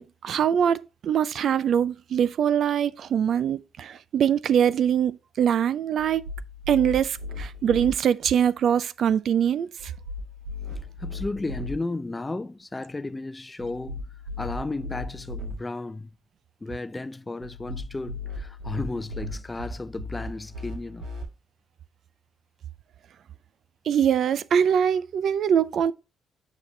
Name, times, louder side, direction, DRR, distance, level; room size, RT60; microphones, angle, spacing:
voice 1, 0.0-6.2 6.7-9.7 23.9-25.9, right 8 dB, 65° right, 0.4 m, -23 dB
sound 1, 6.0-7.9 9.8-11.7 13.6-15.5 17.4-21.2, left 2 dB, 80° right, 3.2 m, -36 dB
voice 2, 10.7-14.1 14.4-16.1 16.6-21.1, left 2 dB, 20° left, 0.5 m, -34 dB
9.7 x 4.3 x 3.2 m
cardioid pair, 90°, 0 cm